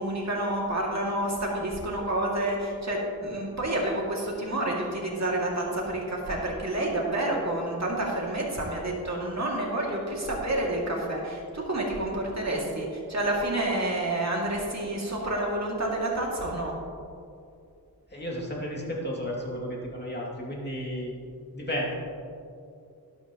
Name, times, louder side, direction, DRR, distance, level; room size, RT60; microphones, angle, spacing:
voice 1, 0.0-16.7, right 1 dB, 45° right, -3 dB, 2.3 m, -29 dB
voice 2, 18.1-21.1 21.5-21.9, equal, 25° left, -4 dB, 2.4 m, -33 dB
12.0 x 12.0 x 3.0 m, 2.5 s
wide cardioid pair, 95°, 38 cm